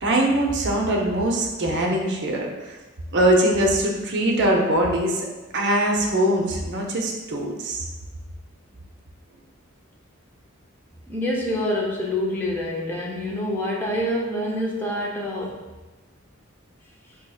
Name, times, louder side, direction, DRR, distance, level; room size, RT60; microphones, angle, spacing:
voice 1, 0.0-2.8 3.1-5.3 5.5-7.9, right 1 dB, 55° right, 0 dB, 0.6 m, -22 dB
voice 2, 11.1-15.6, left 1 dB, 10° left, -3 dB, 0.6 m, -26 dB
4.5 x 2.7 x 2.3 m, 1.2 s
head